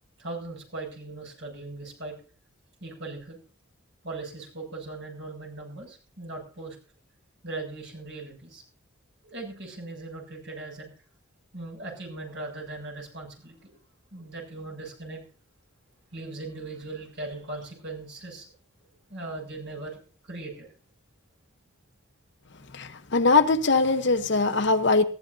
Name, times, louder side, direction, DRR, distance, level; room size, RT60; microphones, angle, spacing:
voice 1, 0.2-2.2 2.8-3.4 4.0-6.8 7.4-8.6 9.2-10.9 11.5-13.7 14.1-15.2 16.1-18.5 19.1-20.7, right 2 dB, 55° right, 7.3 m, -39 dB
voice 2, 22.7-25.0, left 3 dB, 55° left, 1.0 m, -21 dB
20.5 x 14.5 x 2.7 m
head